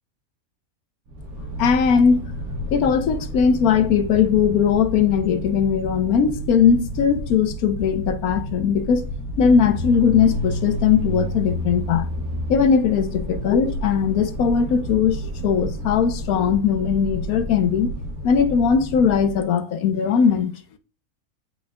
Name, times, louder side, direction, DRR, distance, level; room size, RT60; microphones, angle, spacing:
sound 1, 1.1-19.4, equal, 85° right, 1.4 m, -30 dB
voice 1, 1.6-2.2 2.7-9.1 9.4-12.1 12.5-17.9 18.2-20.6, left 7 dB, 80° left, 1.2 m, -19 dB
8.7 x 4.7 x 2.3 m
omnidirectional pair, 1.5 m